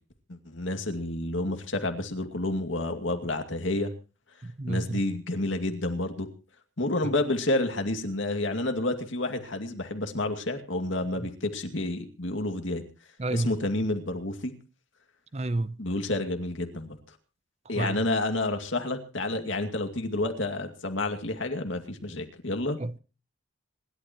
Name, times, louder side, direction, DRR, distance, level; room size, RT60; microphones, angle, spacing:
voice 1, 0.3-3.9 4.7-6.3 6.8-12.8 13.3-14.5 15.8-17.0 17.7-22.8, left 2 dB, 80° left, 2.4 m, -29 dB
voice 2, 4.4-5.0 13.2-13.5 15.3-15.8 17.8-18.0 22.8-23.0, right 2 dB, 35° right, 0.6 m, -30 dB
26.5 x 12.0 x 3.0 m
head